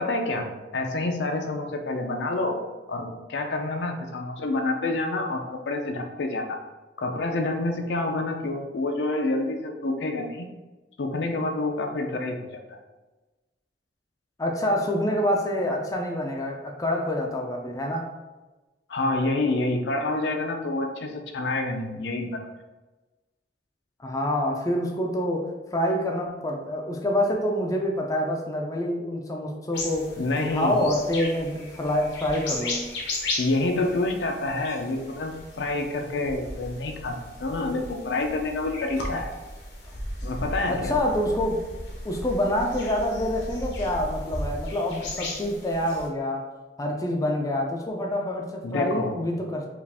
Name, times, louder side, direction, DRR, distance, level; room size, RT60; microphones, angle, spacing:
voice 1, 0.0-2.6 2.9-6.6 7.0-10.5 11.0-12.8 18.9-22.4 30.2-30.9 33.4-37.1 37.4-39.3 40.2-41.0 48.6-49.2, left 2 dB, 70° left, 3 dB, 0.5 m, -28 dB
voice 2, 14.4-18.1 24.0-30.1 30.4-32.8 39.1-39.2 40.7-41.6 42.0-46.5 46.8-49.7, left 1 dB, 20° left, 1 dB, 0.5 m, -26 dB
sound 1, 29.7-46.1, left 1 dB, 85° left, 0.9 m, -36 dB
4.7 x 2.5 x 3.4 m, 1.2 s
head